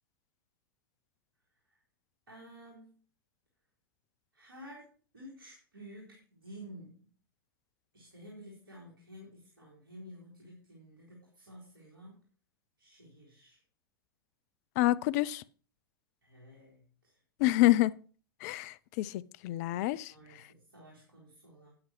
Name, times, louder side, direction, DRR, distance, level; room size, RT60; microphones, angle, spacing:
voice 1, 2.3-3.0 4.3-4.9 5.1-7.1 7.9-12.2 12.8-13.6 16.2-17.1 17.4-17.6 20.1-21.7, equal, 70° right, 4.3 m, -52 dB
voice 2, 14.8-15.4 17.4-17.9 18.4-20.1, left 16 dB, 45° left, 0.4 m, -27 dB
13.0 x 9.4 x 3.2 m
figure-of-eight pair, 95°, 12 cm